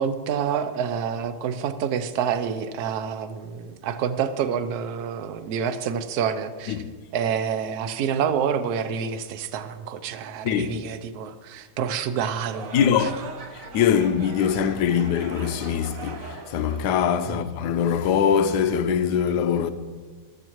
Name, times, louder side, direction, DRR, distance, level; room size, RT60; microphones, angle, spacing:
voice 1, 0.0-6.8 7.1-13.1 17.3-17.5, right 7 dB, 70° right, 0.9 m, -28 dB
sound 1, 12.4-17.6, right 3 dB, 50° right, 1.2 m, -40 dB
voice 2, 12.7-13.1 13.5-19.7, left 8 dB, 80° left, 0.9 m, -23 dB
13.5 x 13.5 x 3.0 m
omnidirectional pair, 2.4 m